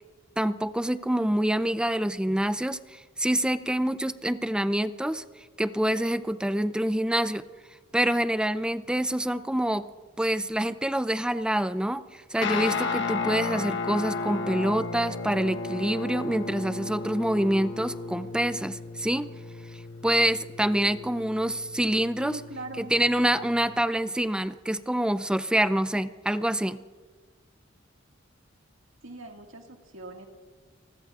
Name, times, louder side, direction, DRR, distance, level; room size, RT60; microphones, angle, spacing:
voice 1, 0.4-5.2 5.6-7.4 7.9-9.9 10.2-19.3 20.0-22.4 22.8-26.8, right 1 dB, 5° right, 12 dB, 0.4 m, -26 dB
Guitar, 12.4-23.8, left 4 dB, 65° left, 1.1 m, -34 dB
voice 2, 22.2-22.9 29.0-30.3, right 2 dB, 80° right, 2 dB, 1.9 m, -41 dB
27.5 x 20.0 x 2.5 m, 1.5 s
head